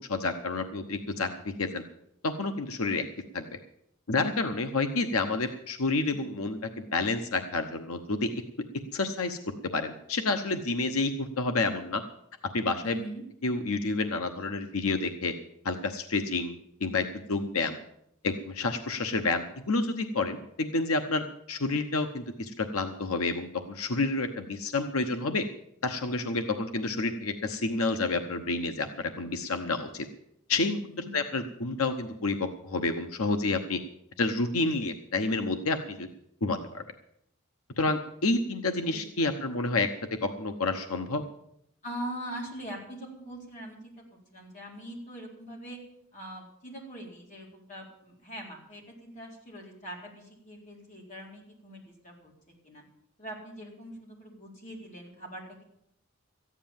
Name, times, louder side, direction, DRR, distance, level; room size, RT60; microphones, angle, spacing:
voice 1, 0.1-1.8 2.2-3.0 3.3-3.5 4.1-6.6 6.9-8.3 8.9-9.4 9.7-12.0 12.5-13.0 13.4-15.3 15.6-16.5 16.8-17.8 18.2-25.5 25.8-30.1 30.5-30.9 31.1-33.8 34.2-36.1 36.4-36.8 37.8-39.9 40.2-41.2, left 3 dB, 90° left, 7 dB, 1.0 m, -29 dB
voice 2, 12.8-13.2 30.9-31.4 38.9-39.0 41.8-43.9 44.3-45.8 46.1-52.3 52.6-52.8 53.2-55.6, right 1 dB, 35° left, -2 dB, 4.0 m, -42 dB
14.0 x 9.8 x 7.2 m, 0.74 s
head